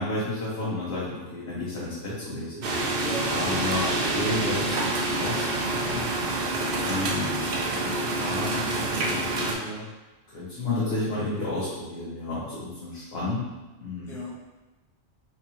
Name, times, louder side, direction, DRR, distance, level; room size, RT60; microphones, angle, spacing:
voice 1, 0.0-2.7 3.3-6.1 6.8-9.8 10.3-13.5 13.8-14.2, left 2 dB, 65° left, -9 dB, 1.0 m, -32 dB
sound 1, 2.6-9.6, right 2 dB, 60° right, 0.7 m, -27 dB
voice 2, 2.9-3.6 14.1-14.3, right 1 dB, 5° left, -6 dB, 0.4 m, -35 dB
4.0 x 2.4 x 2.9 m, 1.1 s
omnidirectional pair, 1.2 m